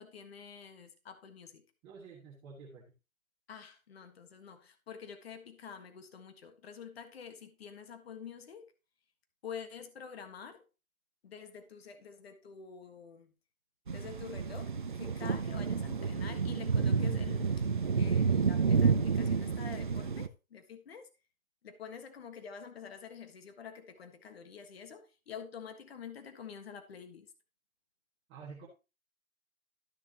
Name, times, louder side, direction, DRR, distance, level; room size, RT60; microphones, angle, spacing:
voice 1, 0.0-1.7 3.5-8.7 9.4-10.6 11.2-13.3 13.9-17.6 18.0-21.1 21.6-27.3, left 7 dB, 45° left, 1.5 m, -48 dB
voice 2, 1.8-2.8 28.3-28.7, right 5 dB, 15° right, 1.5 m, -49 dB
sound 1, 13.9-20.3, right 5 dB, 40° right, 0.4 m, -30 dB
13.0 x 6.3 x 2.9 m
hypercardioid pair, 155°, 41 cm